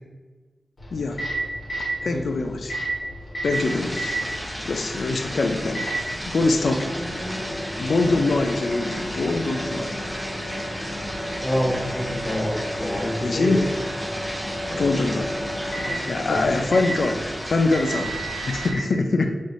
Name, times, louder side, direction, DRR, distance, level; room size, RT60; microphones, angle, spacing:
Microwave oven, 0.8-18.8, right 1 dB, 55° left, 1.2 m, -32 dB
voice 1, 0.9-1.2 2.0-2.8 3.4-4.1 4.6-5.9 6.3-7.0 7.8-10.0 13.2-13.6 14.7-15.4 15.8-17.2 17.5-19.3, left 3 dB, 75° left, 5 dB, 0.4 m, -24 dB
sound 1, 3.5-18.7, equal, 5° right, 0.7 m, -34 dB
voice 2, 11.4-13.6 14.6-15.0 16.3-16.4, equal, 20° left, -5 dB, 1.3 m, -27 dB
5.5 x 3.1 x 2.6 m, 1.4 s
wide cardioid pair, 65°, 0 cm